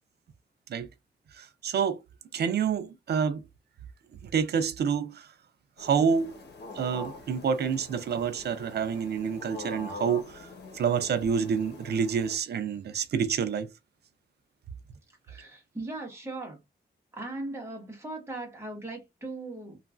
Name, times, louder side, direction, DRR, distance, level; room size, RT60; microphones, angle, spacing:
voice 1, 1.3-2.0 2.3-3.4 4.2-5.3 5.8-6.3 6.7-10.5 10.7-13.7, right 6 dB, 70° right, 0.4 m, -28 dB
sound 1, 5.8-12.4, left 3 dB, 75° left, 0.9 m, -44 dB
voice 2, 15.3-16.6 17.1-19.8, right 2 dB, 15° right, 1.1 m, -38 dB
3.0 x 2.4 x 2.3 m
wide cardioid pair, 170°, 18 cm